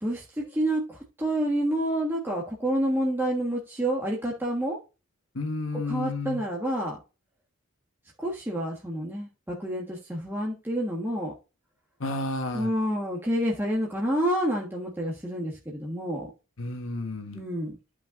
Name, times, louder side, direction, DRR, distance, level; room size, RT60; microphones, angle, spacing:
voice 1, 0.0-4.8 5.9-7.0 8.2-11.3 12.5-16.3 17.3-17.8, right 1 dB, 10° right, 1.4 m, -28 dB
voice 2, 5.3-6.4 12.0-12.7 16.6-17.4, left 2 dB, 65° left, 1.3 m, -31 dB
12.5 x 5.6 x 2.6 m
head